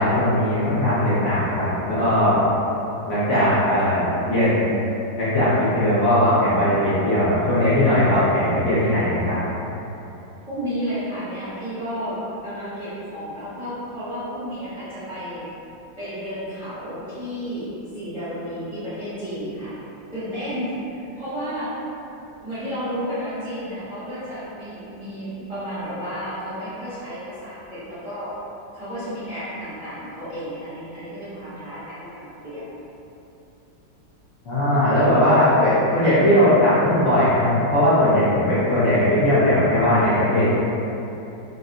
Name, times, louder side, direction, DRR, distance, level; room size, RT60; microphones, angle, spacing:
voice 1, 0.0-2.4 3.1-4.7 5.2-9.4 34.4-40.5, left 1 dB, 60° left, -12 dB, 0.8 m, -19 dB
voice 2, 10.5-15.4 16.0-17.7 17.9-19.7 20.1-21.7 22.4-28.3 28.7-32.6, equal, 20° right, -15 dB, 0.8 m, -32 dB
2.8 x 2.6 x 2.4 m, 2.9 s
omnidirectional pair, 2.1 m